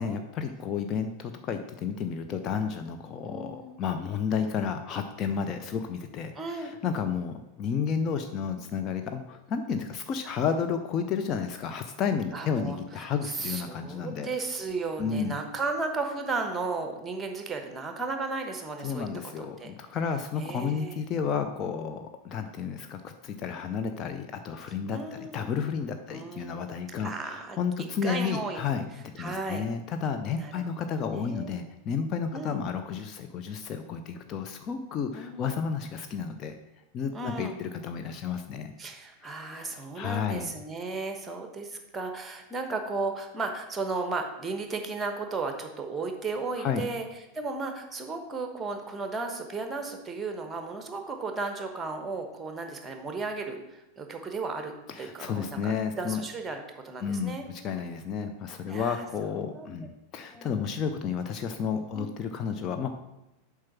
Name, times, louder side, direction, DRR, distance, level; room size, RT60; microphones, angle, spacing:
voice 1, 0.0-14.3 15.0-15.3 18.8-28.8 29.1-36.5 36.9-38.7 39.5-40.5 46.6-46.9 54.9-56.2 57.0-62.9, left 6 dB, 30° left, 6 dB, 0.6 m, -32 dB
voice 2, 3.3-3.8 6.3-6.7 12.3-19.0 19.4-19.7 20.4-20.9 24.9-25.4 26.1-26.6 27.0-27.6 28.0-28.6 29.2-29.6 30.4-31.5 32.3-32.5 35.1-35.5 37.1-37.6 38.8-47.1 47.3-57.4 58.7-59.1 59.4-59.9 60.3-60.7 61.9-62.1, right 3 dB, 15° right, 5 dB, 1.2 m, -35 dB
7.5 x 4.7 x 5.9 m, 0.94 s
figure-of-eight pair, 90°, 0 cm